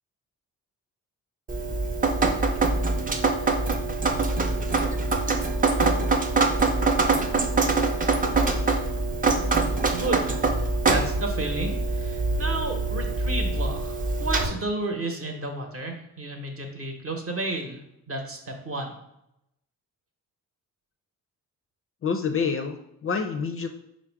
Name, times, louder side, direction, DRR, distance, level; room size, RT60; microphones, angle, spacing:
Drip, 1.5-14.5, right 3 dB, 25° right, 0.5 m, -24 dB
voice 1, 9.9-10.3 10.9-17.8 18.1-19.0, right 2 dB, 40° right, 2 dB, 0.9 m, -32 dB
voice 2, 22.0-23.7, left 5 dB, 40° left, 6 dB, 0.4 m, -27 dB
4.7 x 2.1 x 4.5 m, 0.82 s
cardioid pair, 85°, 35 cm